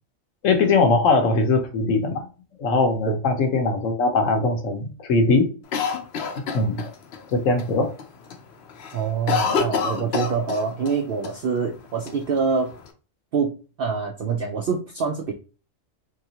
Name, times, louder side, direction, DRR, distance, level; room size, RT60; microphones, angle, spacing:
voice 1, 0.4-2.3 2.6-5.5 6.5-6.8 7.3-7.9 9.4-9.5, left 3 dB, 80° left, 5 dB, 1.1 m, -21 dB
Cough, 5.7-7.2 7.6-7.7 8.0-8.4 8.7-11.0 11.2-11.3 12.1-12.9, left 6 dB, 65° left, 0.8 m, -27 dB
voice 2, 8.9-12.7 13.3-15.3, right 5 dB, 65° right, 2 dB, 0.6 m, -25 dB
3.4 x 2.9 x 2.7 m, 0.35 s
omnidirectional pair, 1.3 m